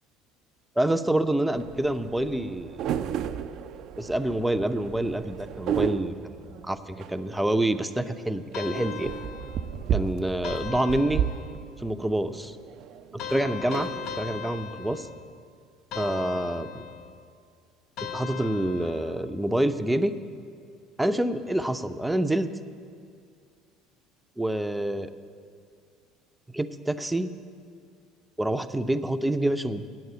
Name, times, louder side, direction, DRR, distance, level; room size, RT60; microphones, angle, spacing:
voice 1, 0.8-2.7 4.0-9.1 9.9-11.2 11.8-12.6 13.1-13.9 14.2-15.1 15.9-16.8 18.0-20.1 21.0-22.5 24.4-25.1 26.5-27.3 28.4-29.8, right 1 dB, 5° right, 10 dB, 0.5 m, -27 dB
sound 1, 1.5-14.5, right 9 dB, 55° right, 0.4 m, -34 dB
sound 2, 8.5-9.9 10.4-11.8 13.2-15.4 15.9-17.2 18.0-19.3, left 8 dB, 55° left, 0.6 m, -38 dB
8.9 x 7.9 x 8.1 m, 2.2 s
hypercardioid pair, 65°, 0 cm